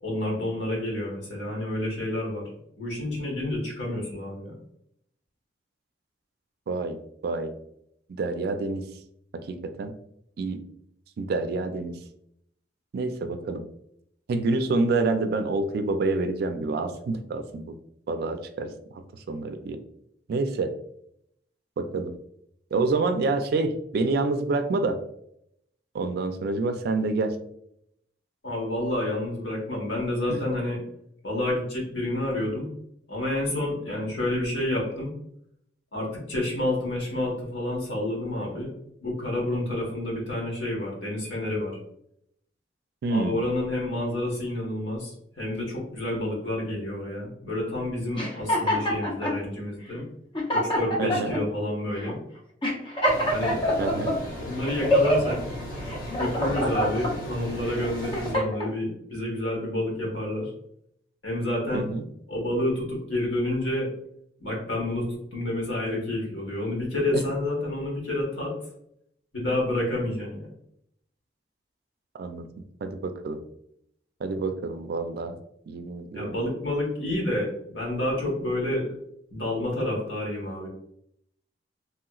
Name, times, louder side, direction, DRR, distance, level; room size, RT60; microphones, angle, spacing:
voice 1, 0.0-2.5 2.8-4.5 28.4-30.8 31.2-32.7 33.1-35.1 35.9-38.7 39.0-41.8 43.1-50.0 50.5-52.2 53.3-53.6 54.4-55.4 56.1-60.5 61.2-61.8 62.3-63.9 64.4-68.5 69.3-70.5 76.1-78.9 79.3-80.7, left 1 dB, 85° left, -3 dB, 1.3 m, -29 dB
voice 2, 6.7-7.5 8.2-8.8 9.3-9.9 10.4-10.6 11.2-12.0 12.9-13.6 14.3-17.8 18.1-18.7 19.3-19.8 20.3-20.7 21.8-22.1 22.7-25.0 25.9-27.4 30.3-30.4 43.0-43.4 51.0-51.3 53.8-54.1 61.7-62.1 67.1-67.2 72.2-72.5 72.8-73.4 74.2-75.4 75.7-76.3, right 3 dB, 60° right, 8 dB, 0.3 m, -27 dB
sound 1, 48.1-49.4 50.0-50.1 50.3-51.4 52.0-52.1 52.6-54.1 54.6-55.3 55.9-57.1 57.7-58.7, equal, 25° left, 0.6 m, -25 dB
sound 2, 53.0-58.4, left 1 dB, 55° left, 1.0 m, -36 dB
3.0 x 2.9 x 2.3 m, 0.73 s
head